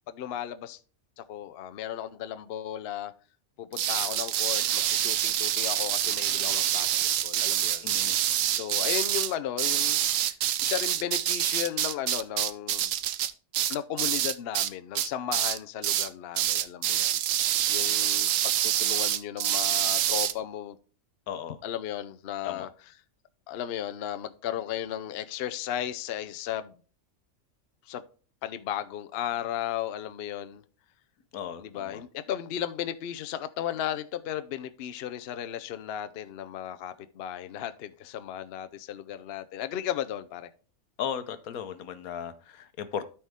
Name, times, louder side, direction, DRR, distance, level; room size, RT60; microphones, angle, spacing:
voice 1, 0.1-0.8 1.2-3.1 3.6-7.9 8.5-10.0 10.3-10.4 10.6-12.9 13.7-20.8 21.6-22.7 23.5-26.7 27.9-28.0 28.4-30.6 31.6-40.5, left 10 dB, 60° left, 0.7 m, -35 dB
sound 1, 3.7-14.7 15.0-15.6 15.8-16.1 16.4-20.3, right 11 dB, 70° right, 1.0 m, -26 dB
voice 2, 7.8-8.2 21.3-21.6 22.4-22.7 31.3-32.0 41.0-43.1, left 8 dB, 85° left, 1.3 m, -36 dB
12.5 x 4.4 x 3.6 m
omnidirectional pair, 1.5 m